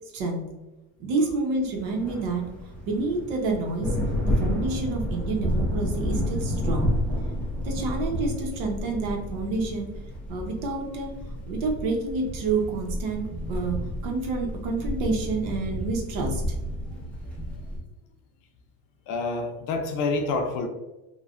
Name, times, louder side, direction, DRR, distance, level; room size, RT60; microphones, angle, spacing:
voice 1, 0.1-0.4 1.0-2.5 2.9-4.0 4.3-7.0 7.6-9.9 10.3-11.1 11.5-16.6, right 3 dB, 75° right, 2 dB, 0.9 m, -28 dB
sound 1, 1.8-17.8, equal, 5° left, 0.3 m, -30 dB
voice 2, 19.1-20.7, left 3 dB, 50° left, 4 dB, 0.6 m, -28 dB
3.1 x 2.2 x 2.4 m, 1.1 s
cardioid pair, 150°, 40 cm